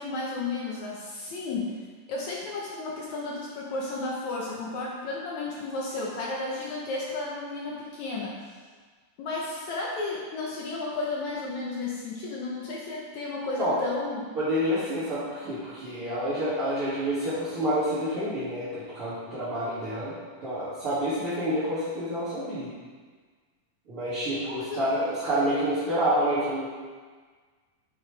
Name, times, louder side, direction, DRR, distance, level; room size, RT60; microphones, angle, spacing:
voice 1, 0.0-1.8 2.1-8.4 9.2-14.3 24.4-24.8, left 3 dB, 65° left, -4 dB, 2.3 m, -33 dB
voice 2, 14.4-20.2 20.4-22.7 23.9-26.7, equal, 45° right, -12 dB, 3.2 m, -28 dB
9.1 x 8.8 x 3.4 m, 1.5 s
omnidirectional pair, 3.7 m